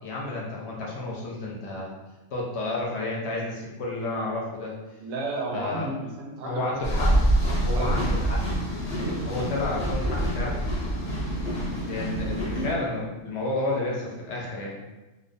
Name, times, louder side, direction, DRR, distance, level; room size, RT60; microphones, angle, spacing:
voice 1, 0.0-1.9 2.3-4.7 5.5-5.9 6.4-7.2 7.6-8.4 9.2-10.6 11.6-14.8, left 2 dB, 65° left, -3 dB, 0.7 m, -31 dB
voice 2, 5.0-7.1 7.7-8.4, right 2 dB, 65° right, -1 dB, 0.7 m, -34 dB
sound 1, 6.8-12.7, right 1 dB, 30° left, 0.5 m, -26 dB
2.5 x 2.2 x 2.5 m, 1.1 s
omnidirectional pair, 1.5 m